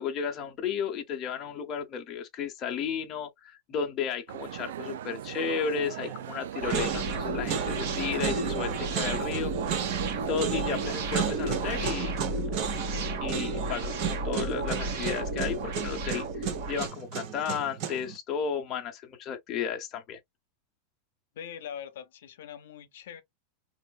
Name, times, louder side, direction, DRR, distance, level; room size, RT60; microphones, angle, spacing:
voice 1, 0.0-9.5 10.3-12.1 13.2-20.2, left 7 dB, 25° left, 0.7 m, -33 dB
sound 1, 4.3-11.9, right 11 dB, 85° right, 0.3 m, -39 dB
sound 2, 6.0-6.4 6.7-18.2, right 8 dB, 40° right, 0.8 m, -34 dB
sound 3, 6.6-16.9, right 2 dB, 55° right, 1.1 m, -33 dB
voice 2, 21.3-23.2, left 9 dB, 80° left, 0.7 m, -42 dB
4.2 x 2.4 x 2.3 m
supercardioid pair, 165°, 0 cm